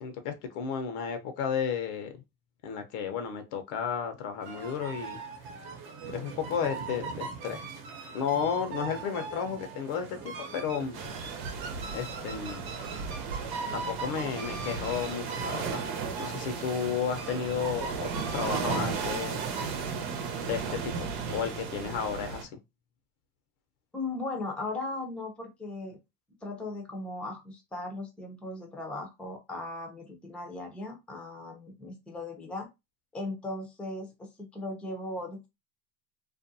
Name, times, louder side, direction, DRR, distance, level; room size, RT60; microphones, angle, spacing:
voice 1, 0.0-2.1 2.6-5.2 6.1-7.7 8.1-11.1 11.9-12.6 13.7-15.9 16.2-19.4 20.4-22.5, left 7 dB, 75° left, 0.8 m, -33 dB
sound 1, 4.4-19.7, right 4 dB, 50° right, 0.9 m, -40 dB
sound 2, 10.9-22.4, right 5 dB, 85° right, 0.9 m, -35 dB
voice 2, 23.9-26.0 26.4-32.7 33.1-35.5, left 2 dB, ahead, 0.5 m, -37 dB
2.5 x 2.2 x 2.6 m
supercardioid pair, 105°, 47 cm